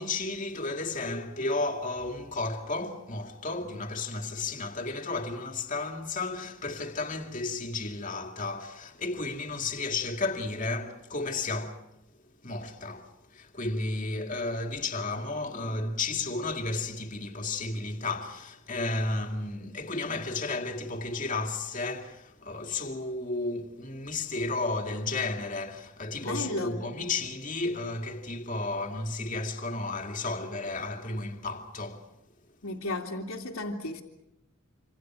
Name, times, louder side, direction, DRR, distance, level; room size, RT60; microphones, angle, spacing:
voice 1, 0.0-11.9 12.4-32.1, left 3 dB, 35° left, 2.3 m, -33 dB
voice 2, 26.2-26.8 32.6-34.0, left 2 dB, 85° left, 2.5 m, -34 dB
27.5 x 26.5 x 6.2 m
head